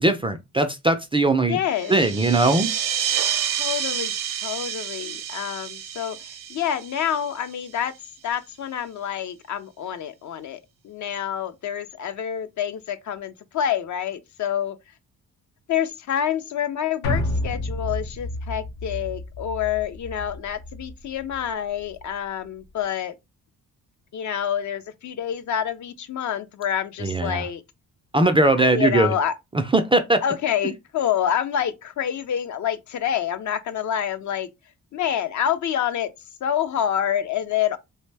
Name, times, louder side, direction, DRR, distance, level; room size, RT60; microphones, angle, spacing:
voice 1, 0.0-1.6 1.9-2.7 27.0-27.4 28.1-29.1 29.5-30.2, right 2 dB, 15° right, 0.3 m, -20 dB
voice 2, 1.4-2.0 3.6-4.1 4.4-7.9 8.2-10.6 10.8-14.8 15.7-23.1 24.1-27.6 28.6-29.3 30.2-34.5 34.9-36.1 36.4-37.8, left 9 dB, 55° left, 0.5 m, -27 dB
sound 1, 1.7-7.8, right 9 dB, 65° right, 0.6 m, -29 dB
sound 2, 17.0-21.5 21.8-21.9, left 1 dB, 85° left, 0.8 m, -30 dB
2.5 x 2.0 x 3.3 m
cardioid pair, 70°, 35 cm